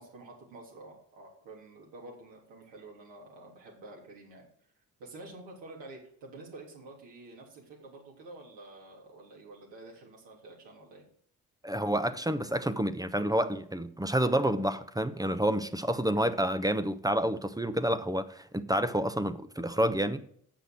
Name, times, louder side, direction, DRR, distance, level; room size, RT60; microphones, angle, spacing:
voice 1, 0.0-4.5 5.0-11.0, right 2 dB, 75° right, 3.3 m, -49 dB
voice 2, 11.6-20.3, right 1 dB, 10° right, 0.9 m, -29 dB
8.1 x 6.1 x 7.7 m
hypercardioid pair, 40°, 44 cm